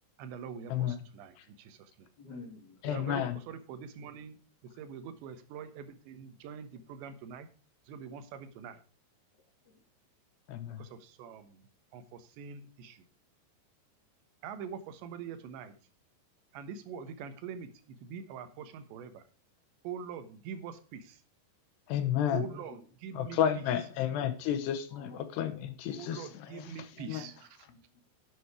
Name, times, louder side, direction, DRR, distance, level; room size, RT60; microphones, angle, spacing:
voice 1, 0.2-1.8 2.9-4.4 4.8-7.5 7.9-8.8 10.8-11.6 11.9-13.0 14.4-15.7 16.5-17.7 18.0-19.2 19.9-21.2 22.3-23.4 25.9-27.5, right 7 dB, 85° right, 11 dB, 3.4 m, -44 dB
voice 2, 2.2-2.9 9.6-9.8 22.5-23.5 24.9-27.4 27.6-28.0, left 2 dB, 35° left, 1 dB, 2.1 m, -52 dB
voice 3, 2.8-3.4 10.5-10.8 21.9-22.5 23.2-26.7 27.1-27.2, left 10 dB, 75° left, 10 dB, 3.1 m, -31 dB
11.0 x 7.7 x 4.8 m, 0.36 s
omnidirectional pair, 5.0 m